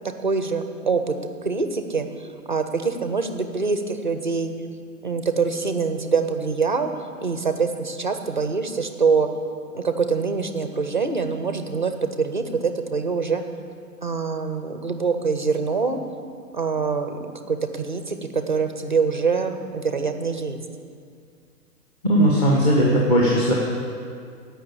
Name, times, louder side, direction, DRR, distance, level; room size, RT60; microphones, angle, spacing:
voice 1, 0.2-1.2 1.4-4.5 5.0-6.9 7.2-9.3 9.7-11.9 12.2-13.4 14.0-16.0 16.5-20.6, right 5 dB, 30° right, 7 dB, 0.4 m, -24 dB
voice 2, 22.0-23.5, equal, 25° left, -4 dB, 1.2 m, -18 dB
15.0 x 5.9 x 8.4 m, 2.2 s
hypercardioid pair, 170°, 49 cm